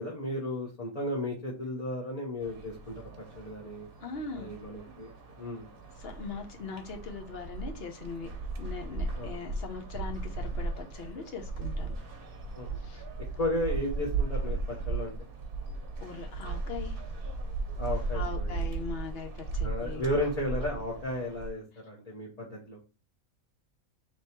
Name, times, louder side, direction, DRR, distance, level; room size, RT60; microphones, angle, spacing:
voice 1, 0.0-3.9 4.3-5.7 9.2-9.4 12.5-12.8 13.4-14.6 14.9-15.1 17.8-18.6 19.6-22.8, left 1 dB, 30° left, 1.1 m, -34 dB
sound 1, 2.4-21.5, right 3 dB, 50° right, 1.0 m, -36 dB
voice 2, 4.0-4.5 6.0-8.3 8.6-12.0 12.8-13.0 16.0-17.0 18.1-20.0, left 5 dB, 55° left, 0.9 m, -40 dB
3.4 x 3.1 x 4.3 m
omnidirectional pair, 1.4 m